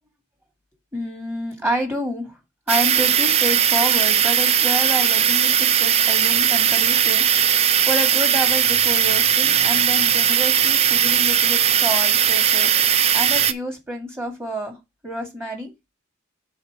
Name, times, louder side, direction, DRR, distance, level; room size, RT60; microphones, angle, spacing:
voice 1, 0.9-2.4 2.7-14.8 15.0-15.7, equal, 10° right, 3 dB, 2.1 m, -29 dB
sound 1, 2.7-13.5, right 9 dB, 30° right, 0.4 m, -18 dB
5.5 x 4.2 x 6.0 m, 0.22 s
head